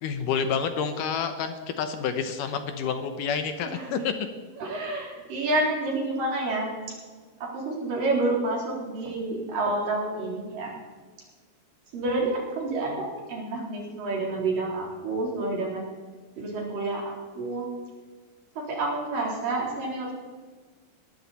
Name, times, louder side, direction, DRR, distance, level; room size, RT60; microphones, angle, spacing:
voice 1, 0.0-4.1, left 6 dB, 70° left, 8 dB, 2.3 m, -29 dB
voice 2, 3.7-4.1 4.6-6.7 7.4-10.7 11.9-15.8 16.4-17.7 18.6-20.1, right 2 dB, 65° right, -2 dB, 5.3 m, -29 dB
20.5 x 13.0 x 4.2 m, 1.4 s
omnidirectional pair, 4.2 m